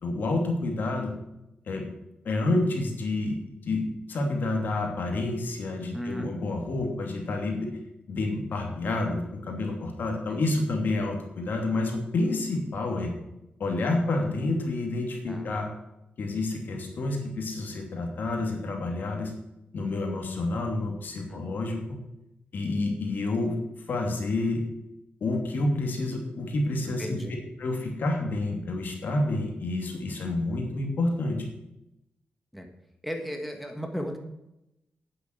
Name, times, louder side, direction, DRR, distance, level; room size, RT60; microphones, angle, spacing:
voice 1, 0.0-1.1 1.7-1.8 2.2-3.4 3.6-7.7 8.1-13.1 13.6-15.7 16.2-19.3 19.7-21.8 22.5-23.5 23.9-24.6 25.2-27.2 27.6-31.4, left 2 dB, 65° left, 2 dB, 2.9 m, -29 dB
voice 2, 5.9-6.4 10.3-10.4 15.3-15.5 21.3-21.4 26.8-27.3 32.5-32.7 33.0-34.2, equal, ahead, 3 dB, 1.6 m, -35 dB
9.4 x 7.9 x 8.1 m, 0.88 s
cardioid pair, 105°, 3 cm